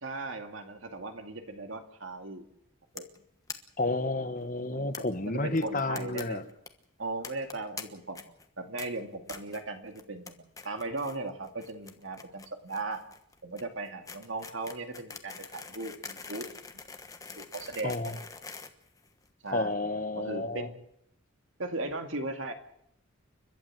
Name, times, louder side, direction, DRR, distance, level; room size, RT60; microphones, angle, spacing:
voice 1, 0.0-2.4 2.9-3.1 4.7-4.9 5.3-6.4 7.0-8.2 8.6-10.3 10.6-13.0 13.4-16.5 17.4-18.2 19.4-19.8 20.1-20.7 21.6-22.5, right 2 dB, 70° right, 5 dB, 2.4 m, -37 dB
sound 1, 3.0-3.2 3.5-3.6 3.8-3.9 4.1-4.2 4.9-5.0 5.6-6.2 6.5-6.7 7.2-7.8 8.1-8.5 8.8-8.9 9.3-9.6 10.0-10.3 10.6-11.2 11.4-19.5, left 4 dB, 15° left, 1.2 m, -44 dB
voice 2, 3.8-6.4 17.8-18.2 19.5-20.7, left 2 dB, 40° left, 10 dB, 1.3 m, -31 dB
30.0 x 12.0 x 7.6 m, 0.76 s
head